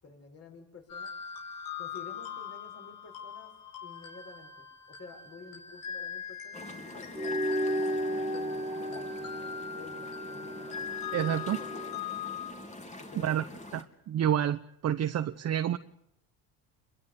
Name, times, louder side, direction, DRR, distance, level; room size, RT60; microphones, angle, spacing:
voice 1, 0.0-1.2 1.8-3.5 3.8-7.8 8.1-10.7 11.2-11.7 13.0-13.3 13.7-13.8, left 4 dB, 40° left, 3 dB, 7.0 m, -51 dB
sound 1, 0.9-12.5, left 7 dB, 55° left, 5.0 m, -41 dB
sound 2, 6.5-13.8, left 1 dB, 20° left, 3.5 m, -46 dB
sound 3, 7.1-11.9, equal, 10° right, 3.3 m, -34 dB
voice 2, 11.1-11.6 13.1-13.4 13.7-15.8, right 10 dB, 40° right, 8 dB, 1.0 m, -29 dB
26.0 x 22.0 x 8.4 m, 0.74 s
supercardioid pair, 100°, 39 cm